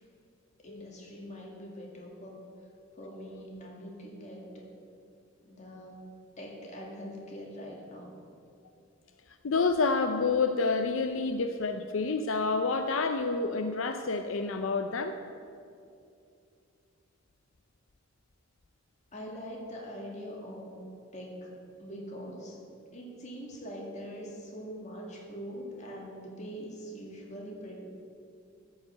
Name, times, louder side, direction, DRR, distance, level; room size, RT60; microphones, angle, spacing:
voice 1, 0.6-2.4 2.9-4.7 5.4-6.1 6.4-8.1 19.1-20.8 21.1-22.6 22.9-27.7, equal, 35° left, -1 dB, 2.2 m, -43 dB
voice 2, 9.4-15.1, left 4 dB, 70° left, 7 dB, 0.5 m, -28 dB
13.5 x 5.6 x 7.8 m, 2.5 s
head